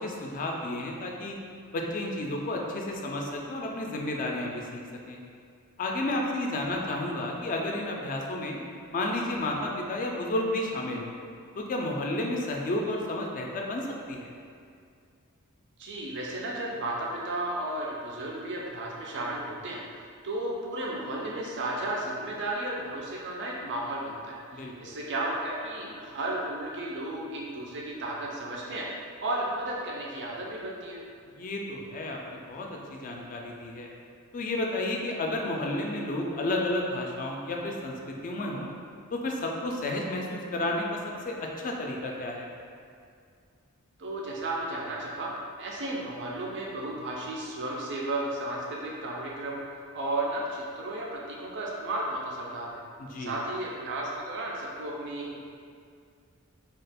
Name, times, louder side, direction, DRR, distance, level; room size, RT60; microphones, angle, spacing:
voice 1, 0.0-1.4 1.7-4.8 5.1-5.2 5.8-8.6 8.9-11.1 11.6-14.3 24.5-25.0 31.3-33.9 34.3-38.7 39.1-41.0 41.2-42.5 53.0-53.3, left 1 dB, 35° left, 0 dB, 0.3 m, -32 dB
voice 2, 15.8-19.8 20.2-28.9 29.2-31.0 44.0-45.3 45.6-49.6 49.9-52.8 53.2-55.5, right 1 dB, 55° right, -3 dB, 0.4 m, -33 dB
2.8 x 2.3 x 3.4 m, 2.3 s
head